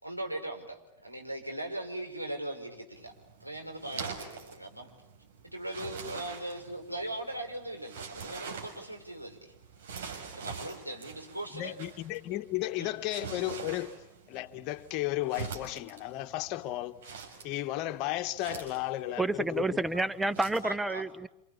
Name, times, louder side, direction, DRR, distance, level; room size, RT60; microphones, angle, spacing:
voice 1, 0.0-3.1 3.4-4.9 5.5-9.5 10.3-11.8 12.8-12.9 20.6-21.0, right 1 dB, 90° right, 5.0 m, -39 dB
sound 1, 2.9-20.7, right 6 dB, 60° right, 6.1 m, -45 dB
voice 2, 11.5-13.9 14.3-19.8, left 16 dB, 40° left, 1.6 m, -34 dB
voice 3, 19.2-21.3, right 2 dB, 5° right, 1.1 m, -29 dB
28.5 x 28.0 x 7.2 m
figure-of-eight pair, 90°, 0 cm